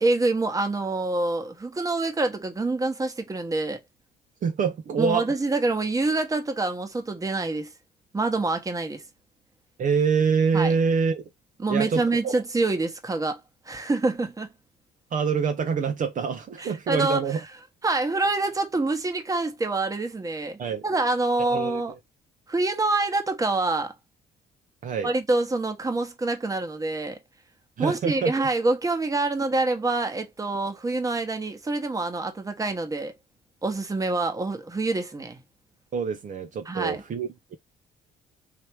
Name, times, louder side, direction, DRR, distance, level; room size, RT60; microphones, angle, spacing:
voice 1, 0.0-3.8 5.0-7.7 8.1-9.0 10.5-10.7 11.6-14.5 16.6-17.4 17.8-21.9 22.5-23.9 25.0-27.2 27.8-33.1 33.6-35.4 36.6-37.0, right 2 dB, 20° right, 1.2 m, -26 dB
voice 2, 4.4-5.2 9.8-11.2 11.7-12.3 15.1-17.4 20.6-20.8 21.4-21.8 24.8-25.1 27.8-28.3 35.9-37.6, right 6 dB, 50° right, 0.7 m, -25 dB
3.3 x 2.9 x 4.6 m
cardioid pair, 85°, 17 cm